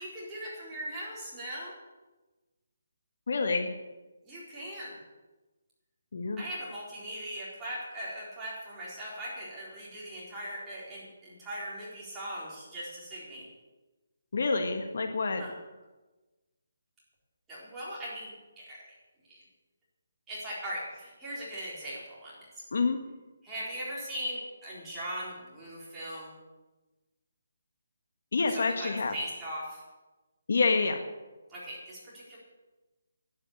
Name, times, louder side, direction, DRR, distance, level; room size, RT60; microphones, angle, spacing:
voice 1, 0.0-1.7 4.2-4.9 6.4-13.5 15.4-15.5 17.5-18.8 19.3-19.4 20.3-22.5 23.4-26.4 28.5-29.8 31.5-32.4, equal, 10° right, -8 dB, 4.0 m, -39 dB
voice 2, 3.3-3.7 6.1-6.4 14.3-15.4 22.7-23.0 28.3-29.1 30.5-31.0, left 4 dB, 55° left, 6 dB, 1.5 m, -27 dB
11.5 x 9.8 x 8.7 m, 1.2 s
hypercardioid pair, 175°, 0 cm